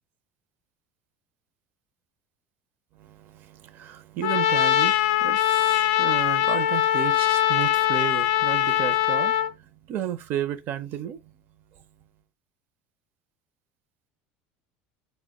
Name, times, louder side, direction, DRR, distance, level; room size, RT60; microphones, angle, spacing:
voice 1, 3.0-9.5 9.9-11.2, right 10 dB, 50° right, 0.5 m, -33 dB
Trumpet, 4.2-9.5, left 12 dB, 80° left, 0.3 m, -22 dB
2.1 x 2.1 x 3.5 m
supercardioid pair, 130°, 4 cm